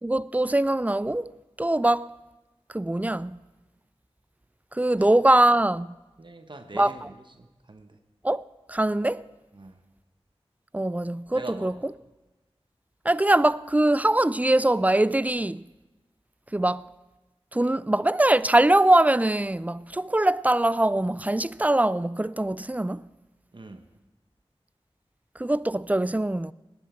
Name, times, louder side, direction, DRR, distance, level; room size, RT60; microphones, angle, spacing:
voice 1, 0.0-1.3 1.6-2.1 2.7-3.4 4.7-6.0 6.7-7.1 8.2-9.3 10.7-11.9 13.0-15.7 16.5-16.9 17.5-23.1 25.4-26.5, right 1 dB, 15° right, 0.3 m, -22 dB
voice 2, 6.2-8.0 9.5-9.8 11.3-11.7 23.5-23.9, right 2 dB, 50° right, 1.1 m, -43 dB
18.5 x 10.0 x 4.5 m
wide cardioid pair, 40°, 10 cm